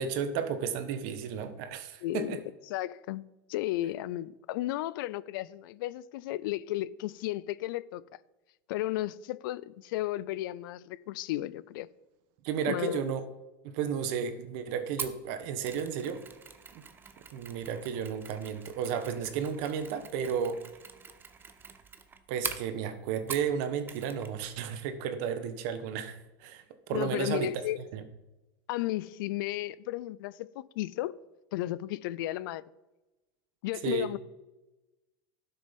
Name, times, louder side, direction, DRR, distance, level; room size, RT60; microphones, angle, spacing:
voice 1, 0.0-2.4 12.4-13.2 13.6-16.2 16.7-16.8 17.3-20.6 22.3-27.5 27.8-28.0 33.8-34.1, right 7 dB, 60° right, 1.3 m, -33 dB
voice 2, 2.0-2.4 2.7-3.2 3.5-8.0 8.7-11.9 12.7-13.0 26.9-27.8 28.7-31.2 31.5-32.6 33.6-34.2, left 16 dB, 70° left, 0.5 m, -34 dB
Mechanisms, 15.0-23.6 23.9-24.3 24.6-24.7, right 5 dB, 15° right, 0.8 m, -43 dB
11.5 x 6.7 x 5.3 m
supercardioid pair, 140°, 12 cm